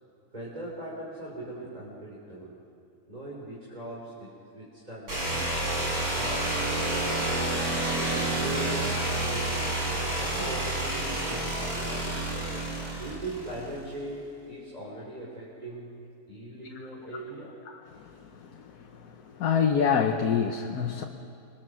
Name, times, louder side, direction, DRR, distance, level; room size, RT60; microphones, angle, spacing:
voice 1, 0.3-2.6 3.1-5.4 6.1-7.3 8.0-12.2 13.0-15.9 16.3-17.5, right 1 dB, 25° right, -5 dB, 3.9 m, -40 dB
sound 1, 5.1-13.8, right 1 dB, 75° right, 6.5 m, -29 dB
voice 2, 19.4-21.0, left 7 dB, 75° left, 3 dB, 1.5 m, -25 dB
27.5 x 22.0 x 6.3 m, 2.5 s
omnidirectional pair, 1.6 m